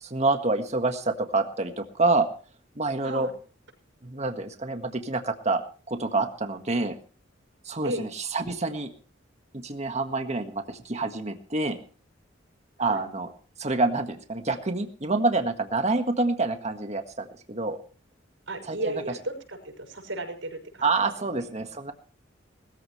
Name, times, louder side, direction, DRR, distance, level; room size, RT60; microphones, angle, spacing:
voice 1, 0.0-2.3 2.7-3.3 4.0-5.6 5.9-7.0 7.6-8.9 9.5-11.8 12.8-13.3 13.6-17.8 18.7-19.0 20.8-21.9, right 3 dB, 35° right, 6 dB, 1.6 m, -27 dB
voice 2, 18.5-20.9 21.4-21.5, right 1 dB, 90° right, 4 dB, 6.0 m, -34 dB
20.5 x 14.5 x 3.2 m, 0.39 s
head